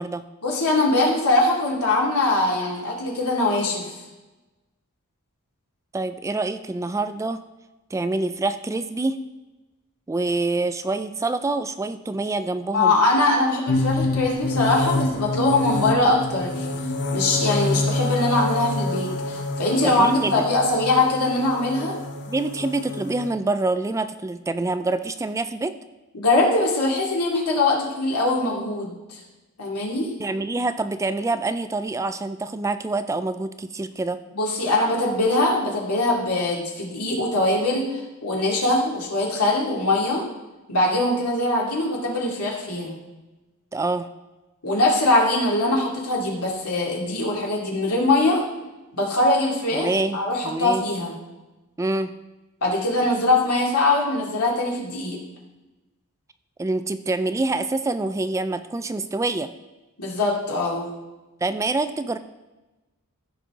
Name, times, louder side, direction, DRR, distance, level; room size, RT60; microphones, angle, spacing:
voice 1, 0.4-3.9 12.7-16.7 17.1-22.0 26.1-29.2 29.6-30.1 34.3-40.2 40.7-43.0 44.6-48.4 48.9-51.1 52.6-55.2 60.0-60.9, left 2 dB, 90° left, -2 dB, 2.5 m, -22 dB
voice 2, 5.9-7.4 7.9-9.2 10.1-12.9 19.8-20.5 22.3-25.8 30.2-34.2 43.7-44.1 49.7-50.2 50.4-50.8 51.8-52.1 56.6-59.5 61.4-62.2, right 2 dB, 15° right, 11 dB, 0.3 m, -26 dB
sound 1, 13.7-23.3, left 2 dB, 55° left, 0.7 m, -27 dB
14.5 x 5.4 x 3.7 m, 1.1 s
head